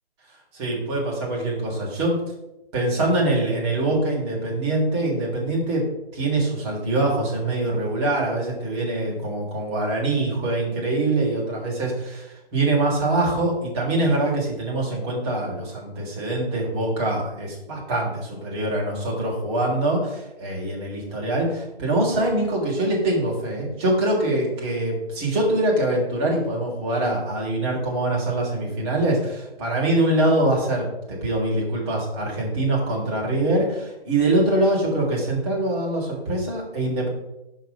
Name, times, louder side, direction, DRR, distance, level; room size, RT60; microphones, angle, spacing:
voice 1, 0.5-2.2 2.7-5.8 6.1-37.1, right 2 dB, 25° right, -2 dB, 3.4 m, -24 dB
11.5 x 4.8 x 5.7 m, 0.93 s
hypercardioid pair, 150°, 30 cm